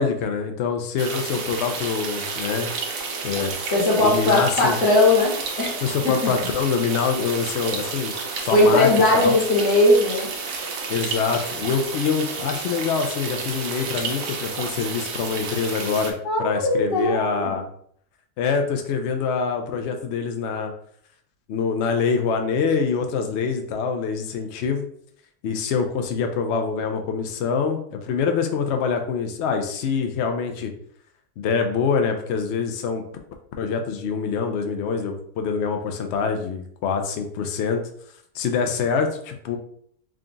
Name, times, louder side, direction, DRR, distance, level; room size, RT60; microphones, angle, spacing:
voice 1, 0.0-2.7 3.2-3.5 4.0-4.8 5.8-8.1 8.4-9.3 10.9-17.6 18.4-20.7 21.5-24.9 25.4-30.7 31.4-33.0 33.6-37.8 38.3-39.6, left 5 dB, 75° left, 5 dB, 0.6 m, -25 dB
sound 1, 1.0-16.1, right 4 dB, 65° right, 1.0 m, -31 dB
voice 2, 3.7-6.2 8.5-10.3 16.2-17.6, left 2 dB, 50° left, -7 dB, 1.4 m, -19 dB
3.7 x 2.3 x 3.8 m, 0.63 s
omnidirectional pair, 1.7 m